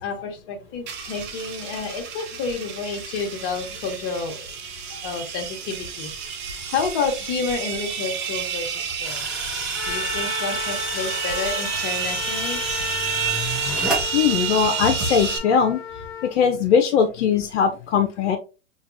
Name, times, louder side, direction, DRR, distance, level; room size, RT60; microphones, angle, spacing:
voice 1, 0.0-4.5 5.0-6.1 6.4-9.3 9.9-12.6, left 4 dB, 50° left, 4 dB, 1.1 m, -30 dB
sound 1, 0.9-15.4, right 6 dB, 30° right, 0.7 m, -30 dB
sound 2, 9.0-14.0, equal, ahead, 0.8 m, -32 dB
Trumpet, 9.7-16.3, left 4 dB, 25° left, 1.4 m, -34 dB
voice 2, 14.1-15.8 16.2-18.4, left 7 dB, 80° left, 5 dB, 0.6 m, -20 dB
4.5 x 2.3 x 2.5 m, 0.31 s
hypercardioid pair, 120°, 35 cm